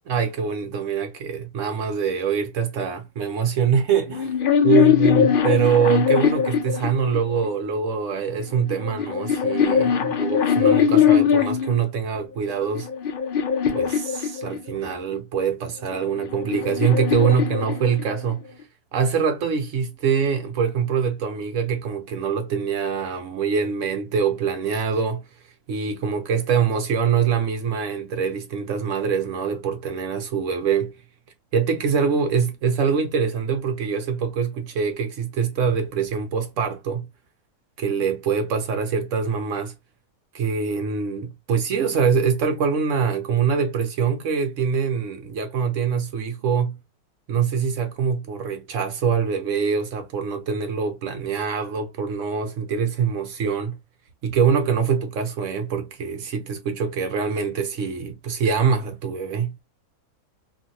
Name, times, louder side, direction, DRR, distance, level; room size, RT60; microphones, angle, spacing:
voice 1, 0.1-4.3 4.6-12.9 13.7-18.4 18.9-25.3 25.7-31.0 31.5-37.1 37.8-39.7 40.3-46.8 47.3-53.8 54.2-59.6, right 6 dB, 65° right, 0.8 m, -24 dB
sound 1, 4.1-7.5 8.4-11.8 12.5-14.9 15.9-18.3, left 8 dB, 75° left, 0.5 m, -21 dB
2.9 x 2.5 x 2.5 m
omnidirectional pair, 1.7 m